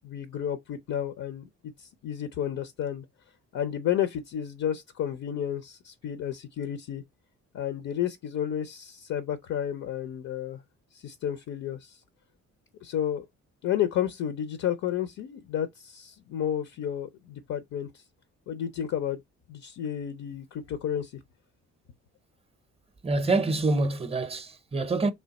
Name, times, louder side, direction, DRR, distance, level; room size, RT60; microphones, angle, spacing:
voice 1, 0.0-3.0 3.5-7.0 7.5-10.6 10.9-12.0 12.8-13.3 13.6-18.0 18.5-19.2 19.5-21.1, left 10 dB, 65° left, 0.5 m, -31 dB
voice 2, 23.0-25.1, right 2 dB, 20° right, 0.6 m, -26 dB
3.3 x 2.3 x 4.0 m
cardioid pair, 90°, 30 cm